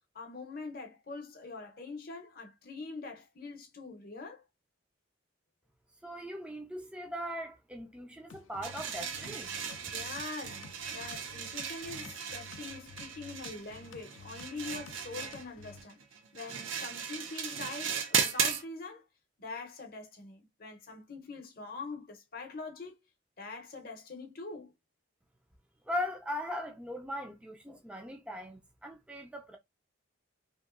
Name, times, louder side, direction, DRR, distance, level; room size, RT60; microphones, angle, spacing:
voice 1, 0.1-4.4 9.9-10.6 10.9-16.0 16.3-19.0 19.4-23.0 23.4-24.7, left 3 dB, 45° left, 0.7 m, -44 dB
voice 2, 6.0-9.5 9.8-9.9 25.9-29.6, left 1 dB, 5° right, 0.3 m, -39 dB
sound 1, 8.3-15.8, left 4 dB, 80° left, 0.4 m, -52 dB
sound 2, 8.6-18.6, right 7 dB, 80° right, 0.5 m, -36 dB
2.9 x 2.5 x 2.4 m
head